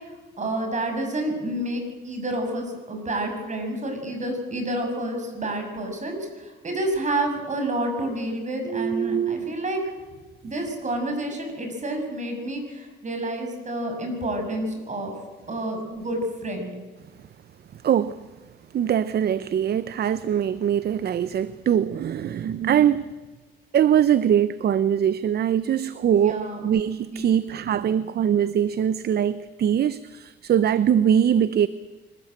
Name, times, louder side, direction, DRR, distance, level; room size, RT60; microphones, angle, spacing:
voice 1, 0.4-9.8 10.4-15.1 15.5-16.7 26.1-26.6 27.1-27.5, right 1 dB, 35° right, 4 dB, 6.7 m, -29 dB
voice 2, 8.7-9.5 17.8-18.2 18.7-23.1 23.7-31.7, right 9 dB, 55° right, 15 dB, 0.7 m, -22 dB
24.5 x 14.0 x 9.1 m, 1.3 s
cardioid pair, 90°, 20 cm